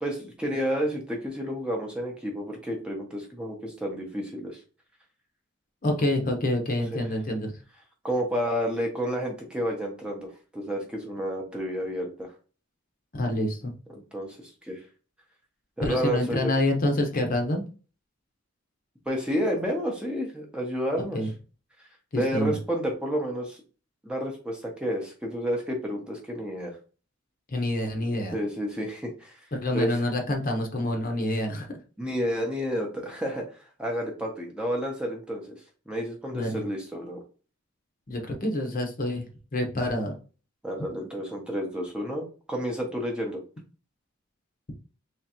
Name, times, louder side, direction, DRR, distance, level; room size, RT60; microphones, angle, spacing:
voice 1, 0.0-4.6 8.0-12.3 13.9-14.8 15.8-16.5 19.1-21.2 22.1-23.6 24.0-26.8 28.3-29.4 29.7-29.9 32.0-33.5 33.8-35.6 35.9-37.2 40.6-43.4, equal, 5° right, -1 dB, 0.8 m, -30 dB
voice 2, 5.8-7.6 13.1-13.7 15.8-17.7 21.0-21.3 22.1-22.6 27.5-28.3 29.5-31.7 36.3-36.6 38.1-40.1, left 1 dB, 40° left, 3 dB, 0.8 m, -27 dB
3.6 x 3.1 x 2.9 m, 0.35 s
head